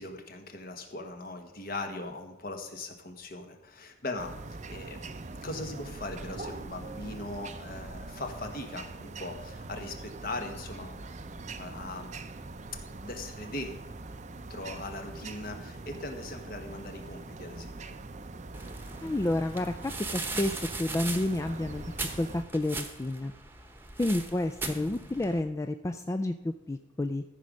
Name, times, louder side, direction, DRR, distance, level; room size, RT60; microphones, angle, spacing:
voice 1, 0.0-4.3 4.7-5.0 5.4-11.0 11.6-12.1 13.0-13.8 14.5-18.0, left 2 dB, 50° left, 5 dB, 1.4 m, -39 dB
sound 1, 4.2-22.4, right 3 dB, 40° right, 0.6 m, -43 dB
sound 2, 18.5-25.4, right 3 dB, 10° right, 1.0 m, -39 dB
voice 2, 19.0-21.9 22.2-23.3 24.0-27.2, left 1 dB, 15° left, 8 dB, 0.3 m, -30 dB
14.0 x 5.3 x 6.2 m, 0.95 s
head